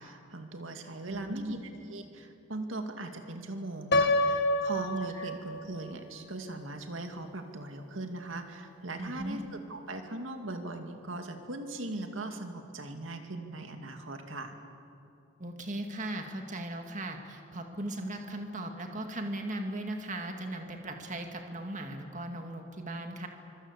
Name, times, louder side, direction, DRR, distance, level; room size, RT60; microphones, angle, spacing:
voice 1, 0.0-1.6 1.9-14.6, right 2 dB, 85° right, 5 dB, 2.4 m, -39 dB
voice 2, 1.0-1.7 5.1-5.3 9.0-9.4 15.4-23.3, right 1 dB, 40° right, 4 dB, 2.1 m, -38 dB
Piano, 3.9-5.9, left 1 dB, 55° left, 1.4 m, -27 dB
25.0 x 24.5 x 8.3 m, 2.7 s
head